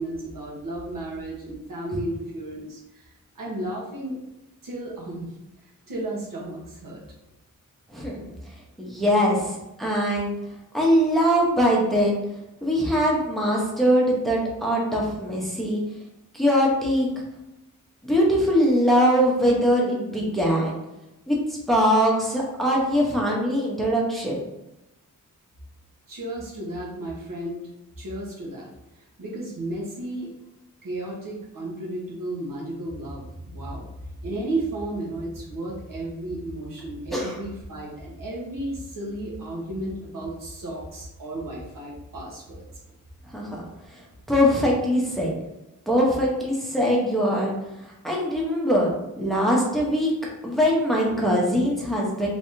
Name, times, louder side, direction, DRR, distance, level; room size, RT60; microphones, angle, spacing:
voice 1, 0.0-4.2 4.6-5.3 5.6-7.0 26.1-27.6 28.0-28.7 29.2-30.3 30.8-33.9 34.2-42.7, right 1 dB, 75° right, -4 dB, 1.2 m, -33 dB
voice 2, 8.8-10.3 10.7-12.2 12.6-15.8 16.3-17.1 18.0-20.8 21.3-24.3 37.1-37.4 43.3-43.6 43.9-44.0 44.3-45.3 45.9-47.5 47.8-48.9 49.2-50.1 50.4-52.3, equal, ahead, -3 dB, 0.9 m, -22 dB
3.4 x 3.3 x 2.7 m, 0.94 s
wide cardioid pair, 95°, 33 cm